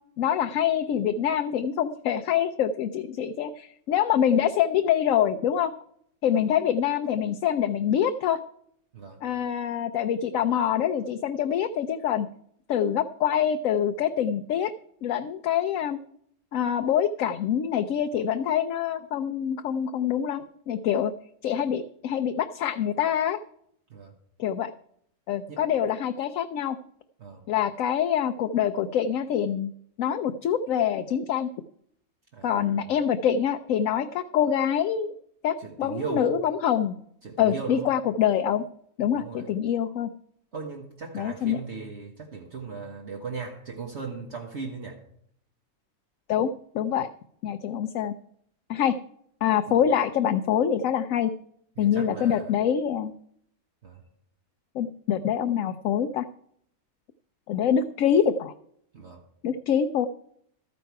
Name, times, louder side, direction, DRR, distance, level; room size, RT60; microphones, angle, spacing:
voice 1, 0.2-5.7 6.2-8.4 9.2-12.3 12.7-14.7 15.0-16.0 16.5-21.1 21.4-23.4 24.4-24.7 25.3-26.8 27.5-29.7 30.0-31.5 32.4-35.1 35.4-36.9 37.4-38.6 39.0-40.1 41.1-41.6 46.3-47.1 47.4-48.1 48.7-49.0 49.4-51.3 51.8-53.1 54.7-56.3 57.5-58.5 59.4-60.1, left 9 dB, 70° left, 8 dB, 1.0 m, -25 dB
voice 2, 32.3-32.9 35.6-36.3 37.2-37.9 39.1-39.5 40.5-45.0 49.7-49.8 51.8-52.5 53.8-54.0 58.9-59.2, right 5 dB, 55° right, 1 dB, 1.5 m, -37 dB
13.5 x 9.3 x 4.7 m, 0.67 s
omnidirectional pair, 1.5 m